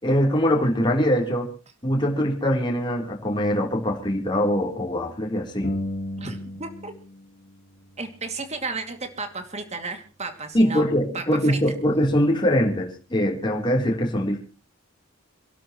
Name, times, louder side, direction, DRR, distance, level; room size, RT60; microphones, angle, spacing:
voice 1, 0.0-1.5 1.8-5.7 10.5-14.4, equal, 20° left, -1 dB, 3.5 m, -22 dB
sound 1, 5.6-7.1 7.4-9.2, left 1 dB, 40° left, 1.8 m, -35 dB
voice 2, 6.2-6.9 8.0-10.8 11.1-11.6, right 3 dB, 30° right, 7 dB, 2.5 m, -33 dB
27.5 x 12.0 x 3.1 m, 0.36 s
head